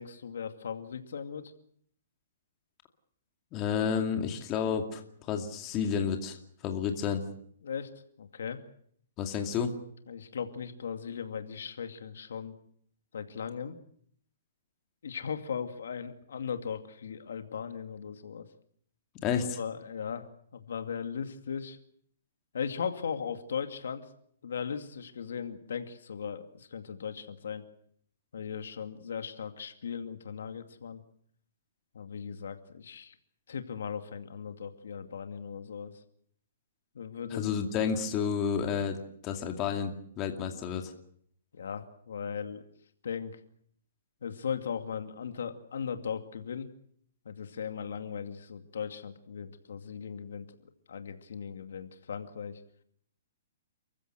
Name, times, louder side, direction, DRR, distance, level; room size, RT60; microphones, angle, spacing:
voice 1, 0.0-1.5 7.6-7.9 8.2-8.6 10.1-12.5 13.1-13.8 15.0-18.5 19.6-21.8 22.5-24.1 24.4-27.6 28.3-31.0 31.9-33.2 33.5-36.0 36.9-37.5 41.5-42.6 43.0-43.4 44.2-46.7 47.2-52.6, left 7 dB, 80° left, 7 dB, 2.4 m, -38 dB
voice 2, 3.5-6.4 6.6-7.2 9.2-9.7 19.2-19.6 37.3-39.0 39.2-40.9, left 7 dB, 25° left, 4 dB, 2.4 m, -30 dB
29.0 x 15.5 x 8.0 m, 0.65 s
hypercardioid pair, 160°, 0 cm